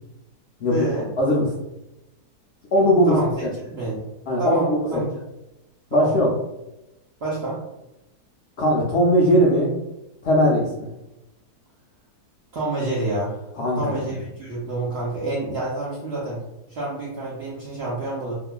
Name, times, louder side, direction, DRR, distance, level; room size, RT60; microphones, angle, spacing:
voice 1, 0.6-1.1 3.1-4.0 4.4-5.2 5.9-6.2 7.2-7.6 12.5-13.4 13.7-16.4 16.7-18.4, right 2 dB, 70° right, -6 dB, 0.6 m, -28 dB
voice 2, 1.2-1.5 2.7-3.5 4.3-5.0 5.9-6.3 8.6-9.7 10.2-10.9 13.6-14.2, equal, 80° left, -3 dB, 0.6 m, -19 dB
2.7 x 2.4 x 2.2 m, 0.95 s
omnidirectional pair, 1.7 m